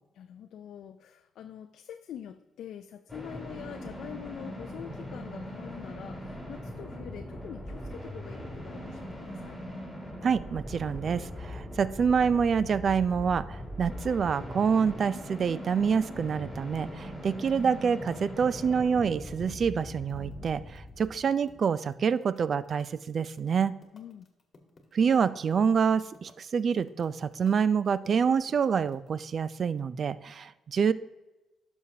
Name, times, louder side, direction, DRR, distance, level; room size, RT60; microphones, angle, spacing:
voice 1, 0.1-9.6 23.9-24.3, left 9 dB, 75° left, 8 dB, 0.4 m, -45 dB
sound 1, 3.1-21.6, equal, ahead, 3.0 m, -41 dB
voice 2, 10.2-23.7 24.9-30.9, right 6 dB, 50° right, 16 dB, 0.4 m, -27 dB
sound 2, 19.9-29.1, left 3 dB, 35° left, 1.4 m, -57 dB
11.0 x 6.3 x 2.8 m, 1.0 s
cardioid pair, 90°, 0 cm